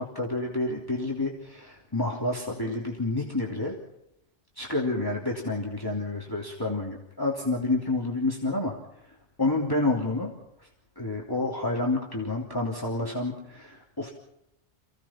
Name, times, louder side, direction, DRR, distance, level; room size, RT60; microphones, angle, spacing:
voice 1, 0.0-3.7 4.5-8.8 9.4-10.3 10.6-10.7 10.9-14.1, left 2 dB, 20° left, -2 dB, 3.2 m, -29 dB
29.0 x 17.0 x 5.9 m, 0.82 s
omnidirectional pair, 1.2 m